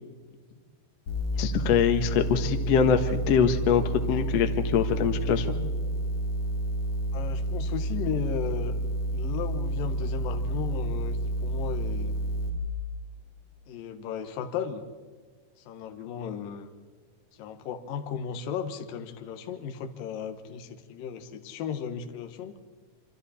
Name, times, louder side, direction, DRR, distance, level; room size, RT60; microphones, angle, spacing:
sound 1, 1.1-12.5, right 1 dB, 40° left, 3.1 m, -30 dB
voice 1, 1.4-3.8 4.1-5.5, left 7 dB, 85° left, 6 dB, 1.4 m, -24 dB
voice 2, 7.1-8.8 9.1-12.2 13.7-14.8 15.7-16.7 17.4-22.5, left 7 dB, 65° left, 6 dB, 2.6 m, -35 dB
27.5 x 26.0 x 4.3 m, 1.5 s
omnidirectional pair, 5.2 m